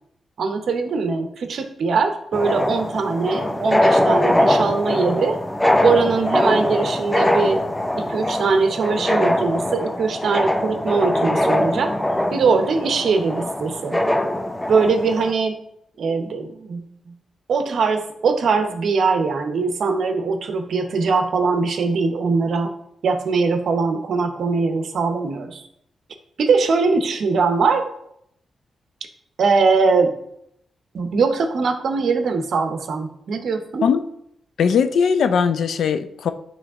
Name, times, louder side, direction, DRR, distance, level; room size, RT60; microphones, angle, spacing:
voice 1, 0.4-5.4 5.8-7.6 7.9-11.9 12.3-14.0 14.7-15.5 16.0-16.9 17.5-22.7 23.0-25.7 26.4-27.8 29.4-30.2 30.9-33.9, right 4 dB, 70° right, 7 dB, 0.8 m, -21 dB
sound 1, 2.3-15.3, left 1 dB, 10° left, 0.5 m, -22 dB
voice 2, 34.6-36.3, left 6 dB, 75° left, 10 dB, 0.5 m, -19 dB
9.5 x 3.2 x 3.6 m, 0.74 s
cardioid pair, 70°, 0 cm